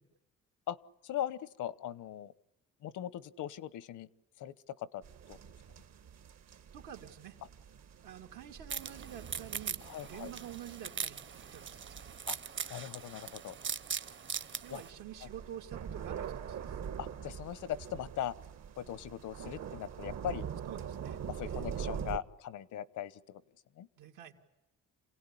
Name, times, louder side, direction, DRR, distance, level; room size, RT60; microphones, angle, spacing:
voice 1, 1.0-2.3 2.8-4.1 4.4-5.0 5.3-5.4 9.8-10.3 12.3-12.4 12.7-13.6 14.7-14.8 15.2-15.3 17.0-18.4 18.8-20.5 21.3-23.4 23.8-23.9, left 11 dB, 80° left, 18 dB, 1.1 m, -40 dB
sound 1, 5.0-22.2, right 8 dB, 60° right, 1.5 m, -44 dB
voice 2, 6.7-7.4 8.0-12.0 14.6-16.8 20.7-21.7 24.0-24.3, right 10 dB, 85° right, 3 dB, 3.0 m, -48 dB
sound 2, 8.7-14.9, right 7 dB, 40° right, 1.0 m, -41 dB
28.0 x 17.5 x 10.0 m, 0.98 s
cardioid pair, 90°, 30 cm